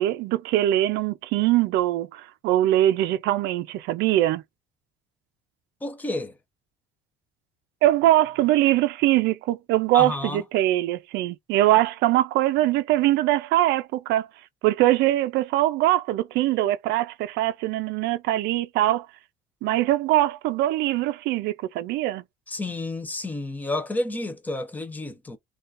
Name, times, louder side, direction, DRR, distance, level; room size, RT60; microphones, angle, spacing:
voice 1, 0.0-4.4 7.8-14.3 14.6-19.1 19.6-22.2, right 14 dB, 65° right, 0.4 m, -22 dB
voice 2, 5.8-6.3 9.9-10.4 22.5-25.4, left 2 dB, 10° left, 0.5 m, -30 dB
3.7 x 2.4 x 2.5 m
cardioid pair, 175°, 19 cm